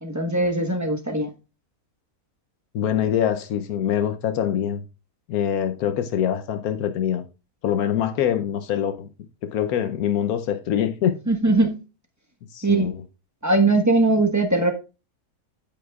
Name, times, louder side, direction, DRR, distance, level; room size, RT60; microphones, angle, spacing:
voice 1, 0.0-1.3 11.3-11.8 12.6-12.9 13.4-14.7, right 2 dB, 15° right, 1.1 m, -20 dB
voice 2, 2.7-4.8 5.3-7.2 7.6-9.1 9.4-11.1 12.5-13.0, left 9 dB, 80° left, 1.2 m, -24 dB
9.4 x 9.2 x 2.4 m
omnidirectional pair, 1.5 m